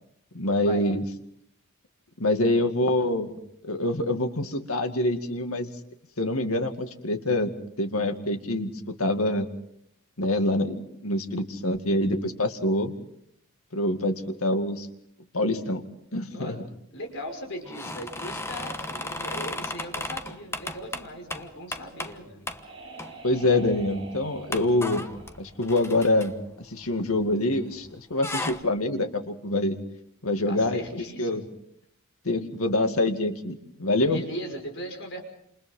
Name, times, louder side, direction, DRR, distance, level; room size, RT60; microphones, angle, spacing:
voice 1, 0.3-1.0 2.2-3.3 3.6-5.7 6.2-7.5 7.8-9.5 10.2-12.9 13.7-14.9 15.3-15.8 16.1-16.6 23.2-25.1 25.4-26.3 26.6-29.8 30.2-31.4 32.2-34.2, left 1 dB, 90° left, 6 dB, 2.2 m, -25 dB
voice 2, 16.3-16.6 16.9-22.5 30.4-31.5 34.1-35.2, equal, 60° left, 2 dB, 5.9 m, -38 dB
sound 1, 17.6-22.2 22.5-22.6 23.0-23.5 23.8-23.9 24.5-27.6 27.8-28.6, left 2 dB, 10° left, 1.1 m, -35 dB
sound 2, 22.0-26.6, right 2 dB, 25° right, 5.4 m, -46 dB
29.5 x 28.0 x 3.8 m, 0.73 s
head